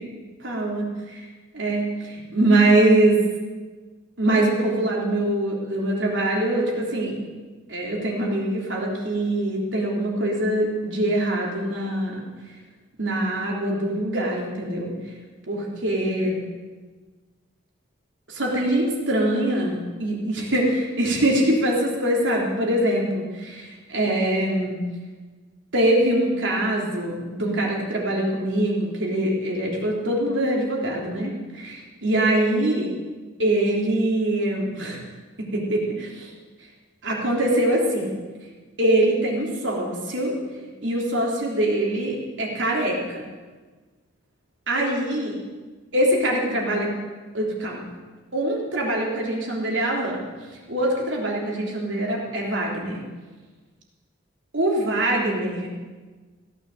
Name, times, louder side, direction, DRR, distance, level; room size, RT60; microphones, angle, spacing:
voice 1, 0.4-1.2 1.5-3.2 4.2-7.2 7.7-12.2 13.0-14.9 15.5-16.5 18.3-24.8 25.7-32.9 33.4-35.0 35.4-36.3 37.0-38.1 38.8-40.3 40.8-43.3 44.7-45.4 45.9-46.9 47.3-47.8 48.3-50.2 50.7-53.0 54.5-55.7, right 1 dB, 70° right, -2 dB, 3.5 m, -23 dB
16.0 x 9.2 x 7.8 m, 1.3 s
head